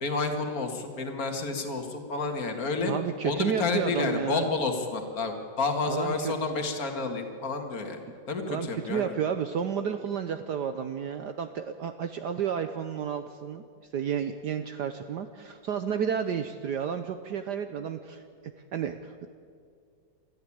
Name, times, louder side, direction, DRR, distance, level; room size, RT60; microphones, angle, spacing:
voice 1, 0.0-2.9 3.2-8.0 8.3-9.1, left 3 dB, 45° left, 5 dB, 2.4 m, -30 dB
voice 2, 2.9-4.5 5.9-6.3 8.5-13.6 13.9-18.2 18.7-19.3, right 8 dB, 65° right, 8 dB, 1.3 m, -31 dB
25.0 x 14.5 x 8.7 m, 2.2 s
omnidirectional pair, 2.2 m